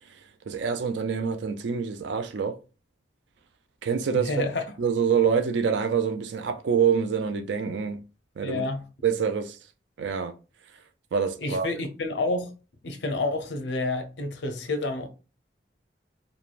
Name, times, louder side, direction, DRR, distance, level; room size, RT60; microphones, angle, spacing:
voice 1, 0.5-2.6 3.8-4.5 4.8-8.0 8.4-8.6 9.0-9.6 10.0-10.3 11.1-11.7, right 6 dB, 80° right, 0.4 m, -26 dB
voice 2, 4.1-4.6 8.4-8.8 11.4-12.5 12.8-15.1, left 2 dB, 75° left, 0.6 m, -29 dB
3.0 x 2.2 x 2.4 m
head